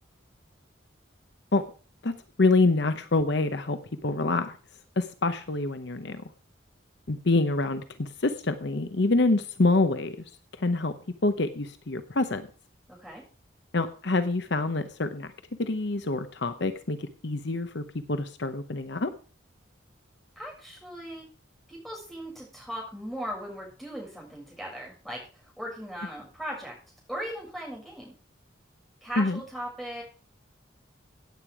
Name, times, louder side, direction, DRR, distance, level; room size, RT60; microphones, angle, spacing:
voice 1, 2.0-4.6 5.0-6.2 7.1-10.2 10.6-10.9 11.2-12.5 13.7-15.3 15.6-19.1 29.2-29.4, left 2 dB, 60° left, 10 dB, 0.9 m, -26 dB
voice 2, 12.9-13.2 20.3-21.2 21.7-25.2 25.6-26.7 27.1-28.1 29.0-30.0, equal, ahead, -3 dB, 6.8 m, -38 dB
16.5 x 8.8 x 4.9 m, 0.39 s
head